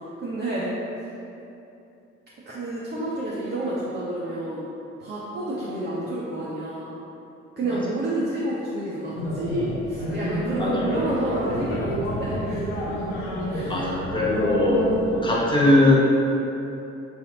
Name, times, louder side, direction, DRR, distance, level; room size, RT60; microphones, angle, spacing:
voice 1, 0.2-0.7 1.0-1.1 2.5-4.7 5.0-7.0 7.6-12.9 13.5-13.9, right 1 dB, 25° right, -7 dB, 0.6 m, -30 dB
sound 1, 9.2-15.4, equal, 65° left, 0.6 m, -29 dB
voice 2, 10.6-10.9 13.7-14.9 15.2-16.0, left 1 dB, 10° left, -6 dB, 0.8 m, -20 dB
3.9 x 2.8 x 2.6 m, 2.8 s
figure-of-eight pair, 40°, 38 cm